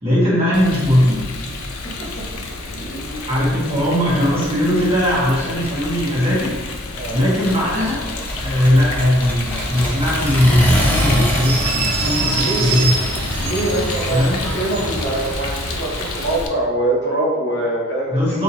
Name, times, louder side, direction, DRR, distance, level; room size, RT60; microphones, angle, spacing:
voice 1, 0.0-1.2 3.3-6.5 7.1-8.0 8.4-12.9 14.1-14.4 18.1-18.4, left 1 dB, 25° right, -8 dB, 1.3 m, -18 dB
Rain, 0.5-16.5, left 3 dB, 75° left, 0.5 m, -30 dB
voice 2, 1.7-2.4 2.7-3.3 6.9-7.2 12.3-12.9 13.4-18.4, right 1 dB, 50° left, -3 dB, 0.8 m, -24 dB
Accelerating revving vroom, 7.5-15.7, equal, 10° left, 0.4 m, -25 dB
sound 1, 9.4-16.4, right 4 dB, 85° right, 0.4 m, -28 dB
4.2 x 2.8 x 2.7 m, 1.3 s
head